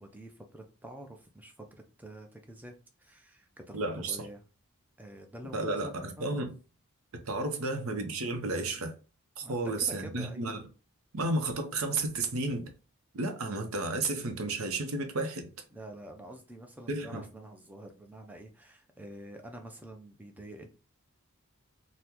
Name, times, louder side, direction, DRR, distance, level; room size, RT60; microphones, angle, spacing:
voice 1, 0.0-1.5 2.0-4.4 5.0-6.4 9.4-10.5 15.7-20.7, right 1 dB, 5° right, 0.4 m, -47 dB
voice 2, 3.7-4.2 5.5-6.5 7.3-8.9 9.4-10.6 11.1-12.7 13.1-15.5 16.9-17.2, right 2 dB, 70° right, 0.7 m, -32 dB
3.6 x 2.1 x 2.9 m
head